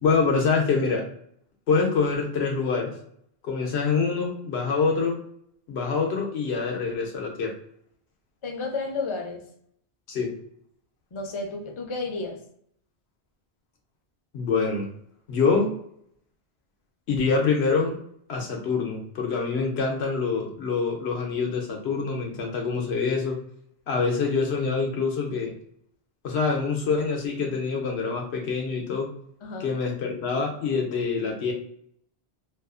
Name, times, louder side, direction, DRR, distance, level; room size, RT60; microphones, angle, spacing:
voice 1, 0.0-1.1 1.7-2.9 3.4-5.2 5.7-7.5 10.1-10.3 14.3-14.9 15.3-15.7 17.1-17.9 18.3-23.4 23.9-25.5 26.2-29.1 29.6-31.5, left 4 dB, 85° left, 1 dB, 1.0 m, -25 dB
voice 2, 8.4-9.4 11.1-12.4 29.4-29.7, left 3 dB, 40° left, 2 dB, 0.5 m, -32 dB
2.6 x 2.4 x 2.4 m, 0.69 s
omnidirectional pair, 1.1 m